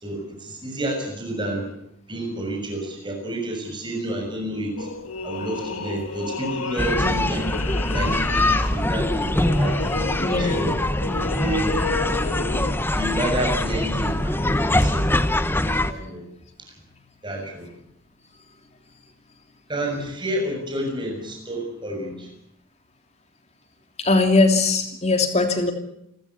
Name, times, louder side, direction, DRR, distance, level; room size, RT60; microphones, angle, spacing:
voice 1, 0.0-1.7 2.1-4.9 5.2-7.4 7.9-9.7 10.4-10.8 11.4-11.8 12.9-15.1 15.5-16.2 16.6-16.7 17.2-17.7 19.7-22.3, right 1 dB, 20° right, 2 dB, 6.7 m, -29 dB
sound 1, 4.8-12.7, left 3 dB, 85° left, 2.1 m, -31 dB
sound 2, 6.8-15.9, left 1 dB, 10° left, 0.9 m, -23 dB
voice 2, 10.2-10.7 24.0-25.7, left 3 dB, 30° left, 5 dB, 3.0 m, -20 dB
28.5 x 14.0 x 8.6 m, 0.79 s
head